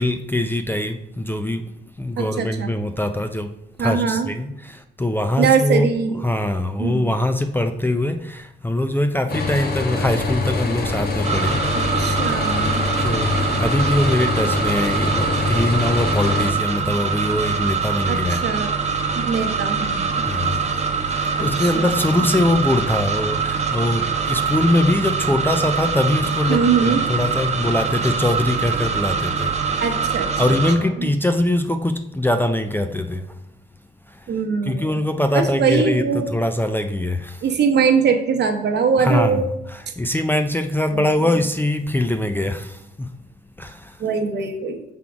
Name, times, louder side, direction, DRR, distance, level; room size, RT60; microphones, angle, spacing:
voice 1, 0.0-3.5 3.8-5.9 6.2-11.7 12.3-12.4 13.0-18.5 20.3-29.8 30.4-33.4 34.1-34.3 34.7-37.5 39.0-39.4 39.7-43.1 43.6-44.0, left 1 dB, 10° left, 0.4 m, -22 dB
voice 2, 2.2-2.7 3.8-4.3 5.4-6.2 6.8-7.1 12.0-12.9 18.1-18.7 19.1-20.2 21.4-21.9 26.5-27.0 29.8-30.3 31.0-31.1 34.3-34.9 35.3-36.3 37.4-39.5 40.9-41.0 44.0-44.8, right 6 dB, 60° right, 0.9 m, -21 dB
sound 1, 9.3-16.5, left 3 dB, 55° left, 1.0 m, -24 dB
sound 2, 11.2-30.8, right 5 dB, 35° right, 0.9 m, -24 dB
6.0 x 3.6 x 5.0 m
cardioid pair, 90°, 20 cm